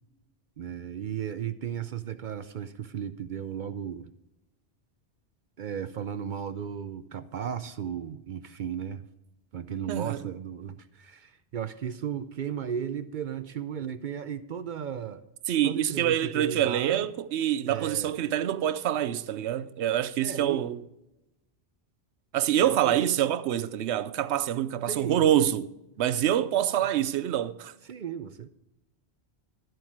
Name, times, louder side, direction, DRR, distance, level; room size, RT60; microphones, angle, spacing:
voice 1, 0.6-4.1 5.6-9.1 9.5-15.2 15.6-17.0 17.7-18.2 20.2-20.6 22.6-22.9 24.9-25.3 27.8-28.5, right 8 dB, 55° right, 0.6 m, -35 dB
voice 2, 9.9-10.2 15.5-20.8 22.3-27.7, right 11 dB, 90° right, 0.9 m, -26 dB
12.0 x 7.8 x 4.7 m
omnidirectional pair, 1.1 m